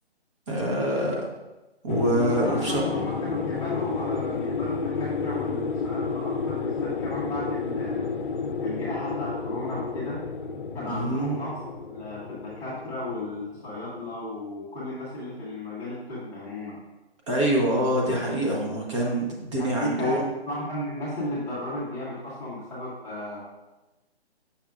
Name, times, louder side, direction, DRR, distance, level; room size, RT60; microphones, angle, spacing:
voice 1, 0.5-1.3 1.8-2.8 10.9-11.4 17.3-20.3, right 1 dB, 30° right, -2 dB, 0.9 m, -25 dB
sound 1, 1.9-14.2, left 4 dB, 50° left, 0.7 m, -31 dB
voice 2, 2.2-8.1 8.6-10.3 10.7-16.8 19.6-23.4, left 1 dB, 10° left, -9 dB, 0.8 m, -34 dB
7.1 x 5.8 x 2.4 m, 1.1 s
figure-of-eight pair, 150°, 32 cm